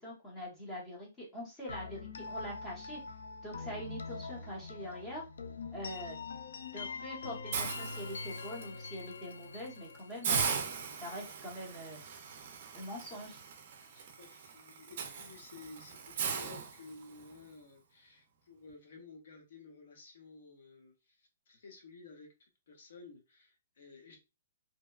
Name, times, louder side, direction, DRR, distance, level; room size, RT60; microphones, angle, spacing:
voice 1, 0.0-3.0 3.4-5.2 5.7-6.2 6.7-10.5 11.0-12.0 12.7-13.4, equal, 10° left, -4 dB, 0.9 m, -44 dB
sound 1, 1.7-11.4, left 4 dB, 90° left, 0.4 m, -44 dB
Hiss, 7.5-8.6 9.1-9.3 9.7-9.8 10.2-17.3, right 6 dB, 40° right, 0.5 m, -38 dB
voice 2, 13.9-22.3 22.7-24.2, left 4 dB, 60° left, 2 dB, 0.7 m, -54 dB
2.7 x 2.1 x 2.3 m, 0.27 s
hypercardioid pair, 175°, 0 cm